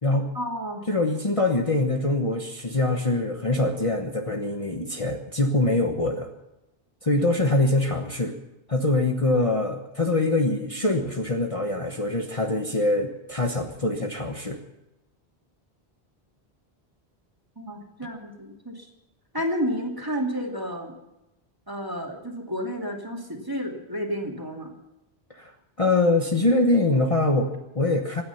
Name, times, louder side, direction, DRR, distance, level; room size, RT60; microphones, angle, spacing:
voice 1, 0.3-0.8 17.6-18.9 19.3-20.9 21.7-24.7, equal, 20° right, 0 dB, 2.7 m, -31 dB
voice 2, 0.9-6.3 7.0-8.3 8.7-14.6 25.3-25.5 25.8-28.2, left 2 dB, 35° left, 3 dB, 1.2 m, -24 dB
25.5 x 9.5 x 5.7 m, 0.93 s
omnidirectional pair, 1.0 m